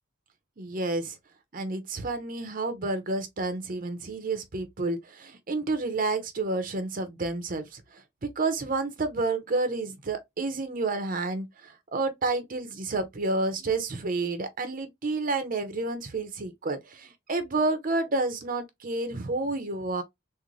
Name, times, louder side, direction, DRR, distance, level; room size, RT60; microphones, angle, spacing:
voice 1, 0.6-1.2 1.5-20.0, right 3 dB, 40° right, 0.6 m, -30 dB
3.8 x 2.1 x 3.0 m
head